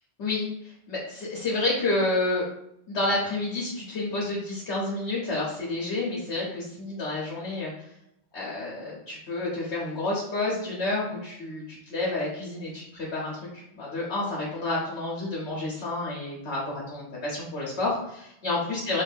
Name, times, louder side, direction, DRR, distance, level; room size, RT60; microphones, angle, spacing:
voice 1, 0.2-2.5 2.9-7.8 8.3-13.4 13.7-19.0, left 2 dB, 75° left, -5 dB, 1.2 m, -29 dB
2.9 x 2.6 x 3.4 m, 0.79 s
omnidirectional pair, 1.1 m